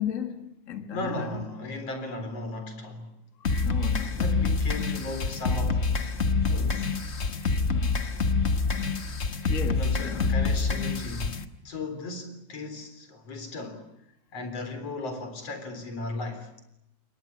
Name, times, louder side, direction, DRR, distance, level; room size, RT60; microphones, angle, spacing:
voice 1, 0.0-1.4 3.6-4.2 7.7-8.1 9.5-10.3, left 7 dB, 35° left, 1.5 m, -35 dB
voice 2, 0.9-3.1 4.2-6.1 6.5-6.9 8.8-8.9 9.7-11.4 11.6-13.8 14.3-16.5, left 2 dB, 55° left, 4.8 m, -36 dB
sound 1, 3.4-11.4, left 4 dB, 70° left, 0.6 m, -26 dB
29.0 x 22.5 x 8.5 m
omnidirectional pair, 3.3 m